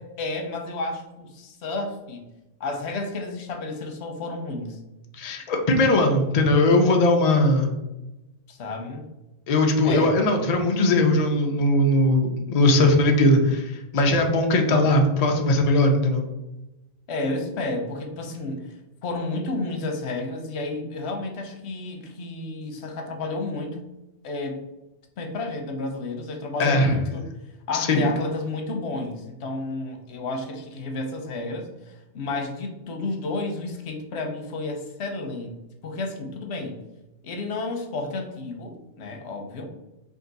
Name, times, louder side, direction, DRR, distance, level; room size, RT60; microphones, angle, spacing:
voice 1, 0.0-2.3 2.6-4.8 8.5-9.1 9.8-10.2 17.1-18.8 19.0-23.9 24.2-24.6 25.2-27.3 27.7-36.8 37.2-39.7, left 2 dB, 85° left, 3 dB, 1.0 m, -31 dB
voice 2, 5.2-7.7 9.5-16.2 26.6-26.9 27.7-28.1, left 1 dB, 45° left, 2 dB, 0.6 m, -20 dB
3.6 x 2.6 x 3.9 m, 0.97 s
omnidirectional pair, 1.1 m